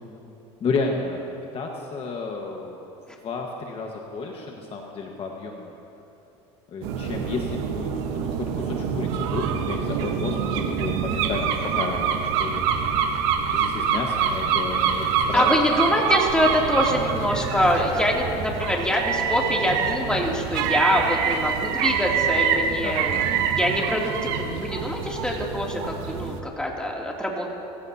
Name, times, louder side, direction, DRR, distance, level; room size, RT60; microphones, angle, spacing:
voice 1, 0.6-1.3 1.5-2.8 3.2-5.7 6.7-12.7 13.5-15.6 22.8-23.3, left 4 dB, 45° left, 1 dB, 1.6 m, -31 dB
sound 1, 6.8-26.4, right 7 dB, 85° right, 1.4 m, -26 dB
voice 2, 15.3-23.2 23.5-27.5, left 1 dB, 5° left, -2 dB, 2.9 m, -24 dB
26.5 x 15.5 x 2.9 m, 3.0 s
supercardioid pair, 100°, 14 cm